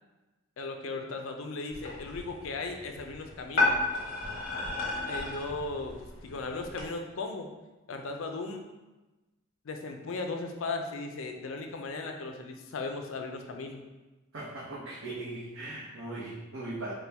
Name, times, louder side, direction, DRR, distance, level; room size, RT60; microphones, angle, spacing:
voice 1, 0.6-3.7 5.1-7.5 7.9-8.6 9.6-13.8, left 3 dB, 70° left, 4 dB, 0.5 m, -37 dB
sound 1, 1.7-6.9, left 2 dB, 50° left, 1.2 m, -33 dB
voice 2, 14.3-17.0, right 2 dB, 65° right, -7 dB, 0.7 m, -39 dB
4.3 x 2.2 x 3.4 m, 1.1 s
head